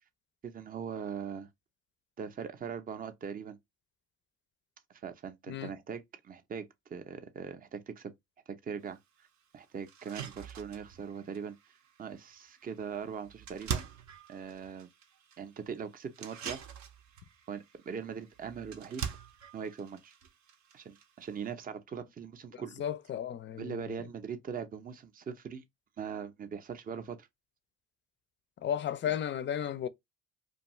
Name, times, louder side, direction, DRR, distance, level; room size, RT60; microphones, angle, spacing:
voice 1, 0.4-1.5 2.2-3.6 5.0-8.1 8.5-9.0 9.5-11.6 12.0-13.8 14.3-14.9 15.4-16.6 17.5-19.0 19.5-20.1 20.7-22.7 23.6-25.6 26.0-27.3, right 7 dB, 30° right, 0.5 m, -41 dB
sound 1, 8.9-9.0 9.4-9.5 9.9-21.5, right 7 dB, 70° right, 0.6 m, -44 dB
voice 2, 22.5-23.9 28.6-29.9, left 9 dB, 40° left, 0.4 m, -34 dB
2.6 x 2.3 x 2.9 m
cardioid pair, 90°, 30 cm